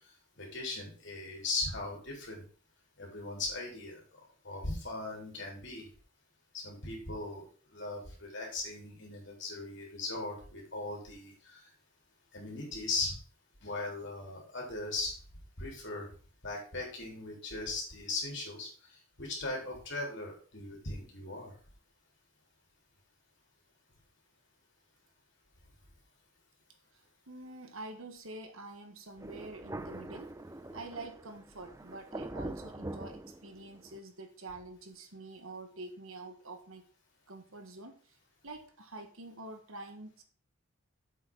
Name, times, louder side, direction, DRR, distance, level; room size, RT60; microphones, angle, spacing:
voice 1, 0.4-2.4 3.0-4.0 4.4-5.9 6.5-7.5 7.7-11.6 12.3-13.1 13.6-15.1 15.6-16.1 16.4-18.7 19.2-21.5, left 3 dB, 55° left, -1 dB, 3.7 m, -38 dB
voice 2, 27.3-30.3 30.7-36.8 37.3-38.2 38.4-40.2, right 2 dB, 70° right, 5 dB, 1.6 m, -46 dB
Thunder, 29.2-34.0, right 1 dB, 15° right, 0.5 m, -43 dB
7.7 x 6.1 x 5.4 m, 0.41 s
head